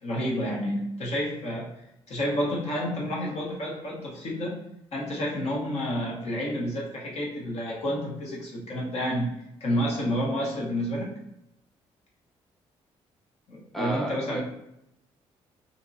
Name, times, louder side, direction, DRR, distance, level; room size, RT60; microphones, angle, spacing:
voice 1, 0.0-4.6 4.9-9.3 9.6-11.1 13.5-14.4, equal, 60° left, -3 dB, 1.1 m, -30 dB
voice 2, 13.7-14.4, right 1 dB, ahead, -1 dB, 0.7 m, -31 dB
2.7 x 2.7 x 2.7 m, 0.85 s
supercardioid pair, 60°, 12 cm